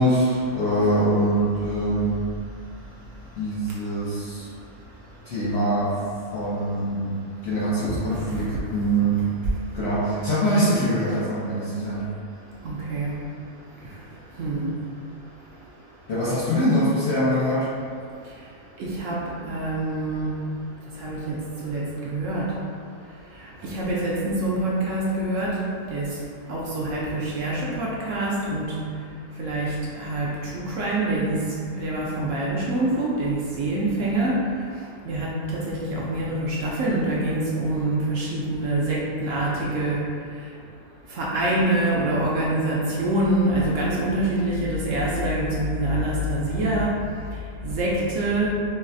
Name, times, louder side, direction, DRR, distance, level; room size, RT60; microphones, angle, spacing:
voice 1, 0.0-2.2 3.4-4.5 5.2-6.0 6.3-7.1 7.4-9.2 9.7-12.0 16.1-17.7, right 1 dB, 65° left, -9 dB, 0.6 m, -23 dB
voice 2, 8.1-8.4 12.6-13.2 13.8-13.9 14.4-14.7 18.8-20.4 20.9-22.5 23.3-25.6 25.9-26.2 26.5-28.8 29.4-34.5 35.0-40.1 41.1-46.9 47.3-48.6, right 1 dB, 65° right, -6 dB, 0.8 m, -25 dB
3.9 x 2.0 x 2.5 m, 2.3 s
omnidirectional pair, 1.6 m